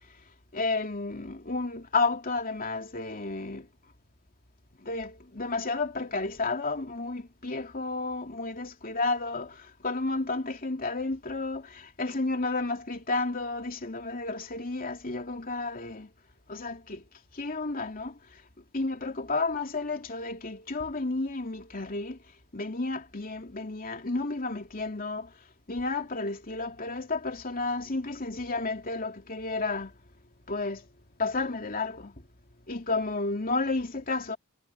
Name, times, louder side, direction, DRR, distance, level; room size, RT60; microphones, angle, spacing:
voice 1, 0.5-3.7 4.8-16.1 16.5-17.0 17.3-18.1 18.7-22.2 22.5-25.3 25.7-29.9 30.5-30.8 31.2-32.1 32.7-34.4, left 3 dB, 40° left, 2.8 m, -32 dB
head